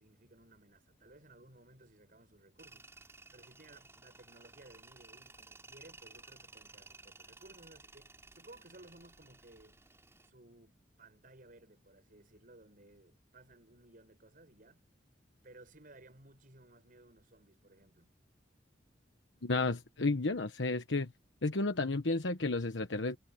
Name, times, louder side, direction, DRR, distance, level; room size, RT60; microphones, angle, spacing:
voice 1, 0.0-2.9 3.3-9.8 10.2-14.8 15.4-18.1, right 2 dB, 50° right, 6.8 m, -59 dB
Tools, 2.6-10.3, right 3 dB, 15° right, 5.9 m, -56 dB
voice 2, 19.4-21.1 21.4-23.2, left 3 dB, 80° left, 1.2 m, -32 dB
head